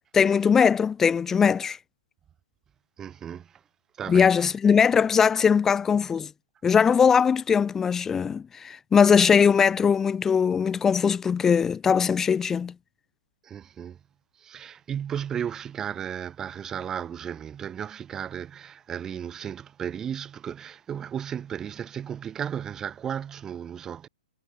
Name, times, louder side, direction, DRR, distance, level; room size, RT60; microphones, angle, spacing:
voice 1, 0.1-1.8 4.1-6.3 6.6-12.7, left 6 dB, 10° left, 3.3 m, -20 dB
voice 2, 3.0-3.5 4.0-4.5 13.4-14.0 14.4-24.1, right 8 dB, 10° right, 5.3 m, -34 dB
hypercardioid pair, 165°, 4 cm